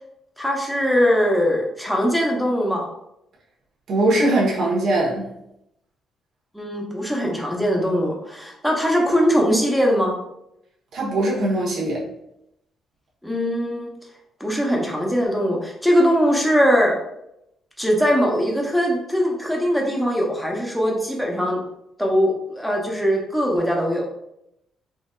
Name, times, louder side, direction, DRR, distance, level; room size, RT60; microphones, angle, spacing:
voice 1, 0.4-2.8 6.5-10.2 13.2-13.9 14.4-16.9 17.8-21.6 22.0-24.0, equal, ahead, -2 dB, 0.9 m, -21 dB
voice 2, 3.9-5.3 10.9-12.0, right 1 dB, 65° right, -4 dB, 1.3 m, -21 dB
4.3 x 2.6 x 2.4 m, 0.82 s
cardioid pair, 90°, 0 cm